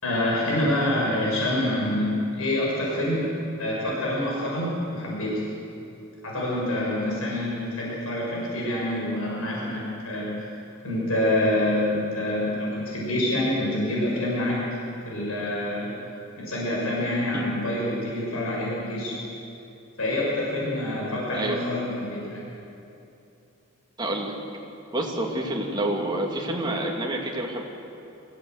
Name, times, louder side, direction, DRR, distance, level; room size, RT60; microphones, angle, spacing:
voice 1, 0.0-3.3 3.6-5.4 6.2-10.5 10.8-14.6 15.0-15.9 16.4-19.2 20.0-22.5, left 1 dB, 85° left, -5 dB, 6.3 m, -26 dB
voice 2, 24.0-24.3 24.9-27.6, right 1 dB, 20° right, 0 dB, 2.5 m, -28 dB
22.5 x 16.5 x 8.0 m, 2.8 s
head